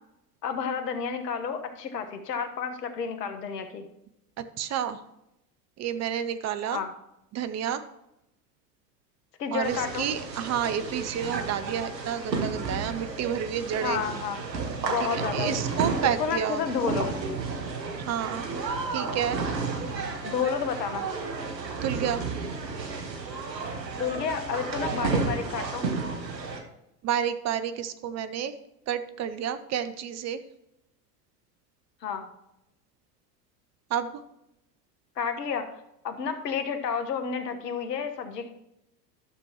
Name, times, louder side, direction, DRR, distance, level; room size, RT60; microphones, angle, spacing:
voice 1, 0.4-3.8 6.7-6.9 9.4-10.1 13.8-14.4 14.8-15.6 16.2-17.1 20.2-21.1 23.9-25.9 32.0-32.3 35.2-35.7 36.0-38.5, left 6 dB, 75° left, 8 dB, 1.3 m, -30 dB
voice 2, 4.4-5.0 5.8-6.8 7.3-7.8 9.5-14.0 15.0-16.6 18.1-18.5 18.9-19.4 21.8-22.2 27.0-28.6 28.9-30.4 33.9-34.1, right 9 dB, 35° right, 11 dB, 0.8 m, -30 dB
sound 1, 9.6-26.6, right 4 dB, 85° right, 1.4 m, -32 dB
12.0 x 7.0 x 3.0 m, 0.85 s
hypercardioid pair, 85°, 49 cm